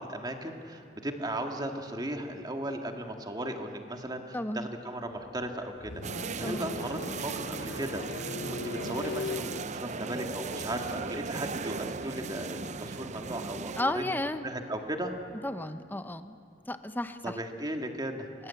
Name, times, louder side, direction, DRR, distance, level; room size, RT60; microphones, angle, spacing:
voice 1, 0.0-8.0 8.5-14.2 14.4-15.1 17.2-18.3, right 1 dB, 25° right, 4 dB, 2.0 m, -36 dB
voice 2, 4.3-4.7 6.4-6.7 13.7-14.5 15.4-16.4 16.7-17.4 18.4-18.5, left 1 dB, 10° left, 10 dB, 0.9 m, -33 dB
sound 1, 5.1-15.3, left 3 dB, 80° left, 1.2 m, -42 dB
sound 2, 6.0-13.8, right 4 dB, 40° right, 0.5 m, -37 dB
29.0 x 21.0 x 8.5 m, 2.5 s
head